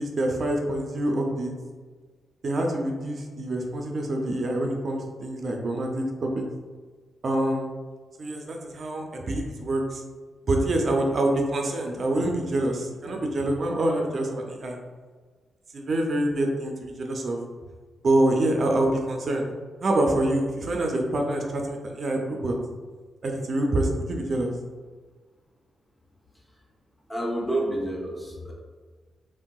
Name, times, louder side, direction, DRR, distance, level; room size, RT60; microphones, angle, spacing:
voice 1, 0.0-1.5 2.4-6.4 7.2-7.7 8.2-10.0 10.5-14.8 15.7-17.4 18.0-19.5 19.8-22.5 23.2-24.5, right 1 dB, 40° right, 1 dB, 0.4 m, -26 dB
voice 2, 27.1-28.5, right 1 dB, 10° left, -2 dB, 0.6 m, -29 dB
3.2 x 2.7 x 2.2 m, 1.5 s
wide cardioid pair, 145°, 0 cm